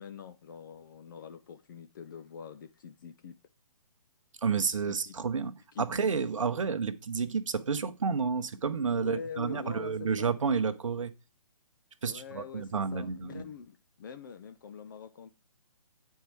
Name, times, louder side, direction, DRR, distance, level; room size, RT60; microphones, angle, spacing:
voice 1, 0.0-3.4 4.9-5.1 5.7-5.9 9.0-10.3 12.0-15.3, left 7 dB, 35° left, 0.5 m, -45 dB
voice 2, 4.4-11.1 12.0-13.5, right 5 dB, 60° right, 0.9 m, -30 dB
9.0 x 4.7 x 4.7 m
figure-of-eight pair, 135°, 19 cm